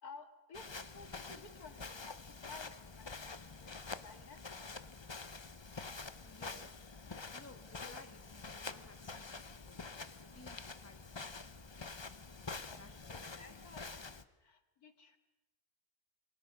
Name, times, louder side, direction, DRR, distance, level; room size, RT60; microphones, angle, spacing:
voice 1, 0.0-4.5 7.0-7.3 12.7-14.1 14.4-15.2, left 4 dB, 80° left, 8 dB, 2.4 m, -55 dB
Walk footsteps, 0.5-14.2, left 4 dB, 25° left, 0.6 m, -47 dB
voice 2, 6.2-6.7 7.3-10.1 10.3-11.9 12.5-13.6, left 3 dB, 10° left, 5 dB, 2.0 m, -58 dB
29.0 x 23.0 x 6.4 m, 1.0 s
omnidirectional pair, 1.6 m